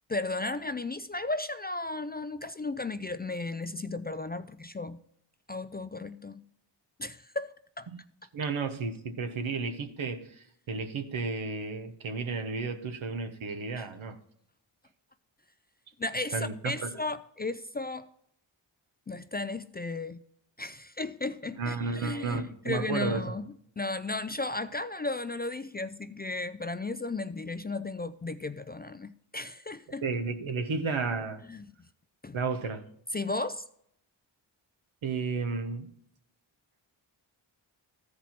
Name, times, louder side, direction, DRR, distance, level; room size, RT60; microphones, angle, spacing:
voice 1, 0.1-5.0 5.5-6.4 7.0-7.9 13.8-13.9 16.0-18.1 19.1-20.2 20.6-23.5 23.8-30.0 31.5-31.7 32.2-32.4 33.1-33.6, left 2 dB, 20° left, 0.3 m, -35 dB
voice 2, 8.3-14.2 16.3-16.9 21.5-23.2 30.0-31.4 32.3-32.8 35.0-35.9, right 4 dB, 75° right, 1.2 m, -33 dB
14.0 x 5.1 x 4.3 m
cardioid pair, 50°, 48 cm